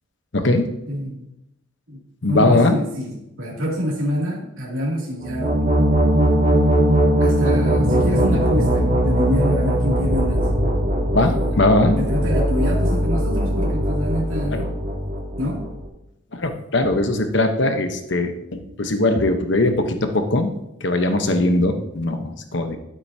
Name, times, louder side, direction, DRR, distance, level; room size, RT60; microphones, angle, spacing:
voice 1, 0.3-0.7 2.2-2.8 11.1-12.0 14.5-14.6 16.3-20.5 20.8-22.8, left 2 dB, 60° left, 7 dB, 1.0 m, -20 dB
voice 2, 0.9-1.2 1.9-2.0 2.3-5.6 7.2-10.5 12.0-14.6 15.4-15.7, equal, 85° right, -4 dB, 2.7 m, -26 dB
sound 1, 5.2-15.9, equal, 35° right, 1.7 m, -20 dB
12.0 x 8.0 x 2.8 m, 0.85 s
head